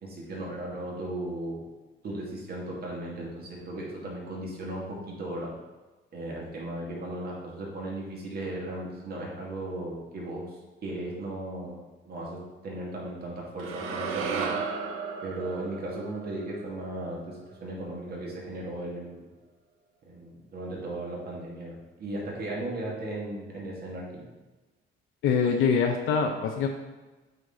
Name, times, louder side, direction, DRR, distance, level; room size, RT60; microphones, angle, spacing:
voice 1, 0.0-1.6 2.0-5.5 6.1-10.5 10.8-14.5 15.2-19.3 20.1-24.2, right 1 dB, 50° right, -3 dB, 2.2 m, -36 dB
sound 1, 13.6-17.8, right 5 dB, 85° right, 0.9 m, -35 dB
voice 2, 25.2-26.7, left 6 dB, 80° left, 3 dB, 0.6 m, -24 dB
7.9 x 4.4 x 3.8 m, 1.2 s
cardioid pair, 110°, 21 cm